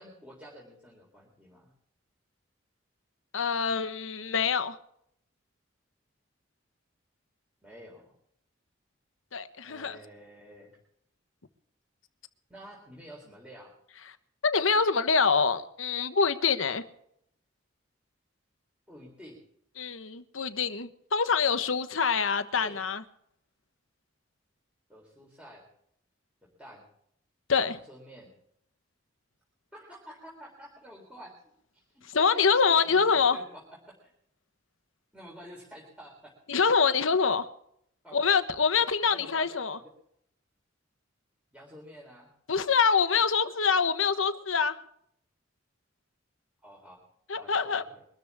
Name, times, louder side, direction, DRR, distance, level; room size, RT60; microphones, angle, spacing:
voice 1, 0.0-1.7 7.6-8.1 9.7-10.8 12.5-13.7 18.9-19.4 22.6-22.8 24.9-25.6 26.6-26.8 27.5-28.3 29.7-31.3 31.7-32.4 32.7-34.1 35.1-36.3 37.2-37.4 38.0-38.4 39.1-39.9 41.5-42.3 46.6-47.0 47.3-48.0, equal, 5° right, 3.7 m, -49 dB
voice 2, 3.3-4.8 9.3-10.0 14.4-16.8 19.8-23.0 27.5-27.8 32.1-33.4 36.5-37.4 38.1-39.8 42.5-44.7 47.3-47.8, left 5 dB, 85° left, 1.1 m, -25 dB
23.0 x 13.0 x 3.6 m
head